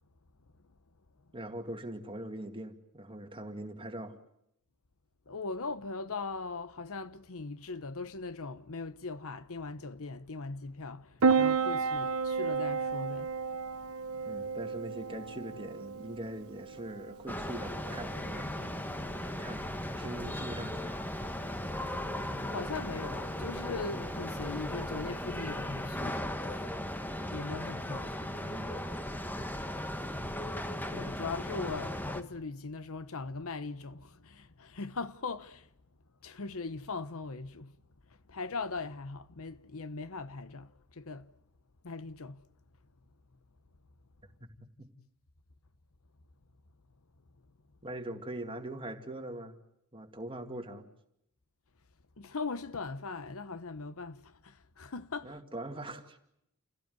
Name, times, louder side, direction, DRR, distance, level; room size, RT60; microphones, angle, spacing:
voice 1, 1.3-4.2 14.3-18.5 19.4-21.0 28.3-29.0 44.4-44.9 47.8-49.6 49.9-50.9 55.2-56.2, right 1 dB, 25° right, 2.2 m, -42 dB
voice 2, 5.3-13.3 13.7-13.8 14.1-14.4 21.5-28.4 30.4-35.7 36.2-37.8 38.3-41.3 41.8-42.4 52.2-55.4, left 4 dB, 65° left, 1.0 m, -40 dB
Piano, 11.2-26.2, right 5 dB, 70° right, 0.9 m, -35 dB
sound 1, 17.3-32.2, left 1 dB, 10° left, 1.3 m, -37 dB
28.5 x 16.5 x 9.4 m
head